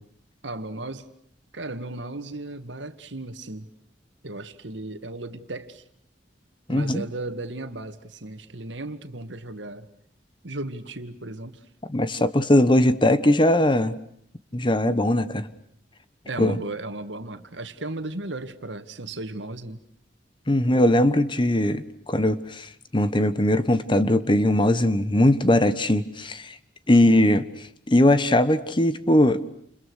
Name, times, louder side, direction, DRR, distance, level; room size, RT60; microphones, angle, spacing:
voice 1, 0.4-1.1 1.5-3.7 4.2-5.8 6.7-9.9 10.4-11.7 16.3-19.8 28.9-29.0, right 2 dB, 85° right, 2.1 m, -35 dB
voice 2, 6.7-7.0 11.9-13.9 14.5-15.5 16.4-16.6 20.5-26.5 26.9-27.5 27.9-29.4, left 1 dB, 25° left, 1.2 m, -20 dB
30.0 x 29.0 x 6.5 m
head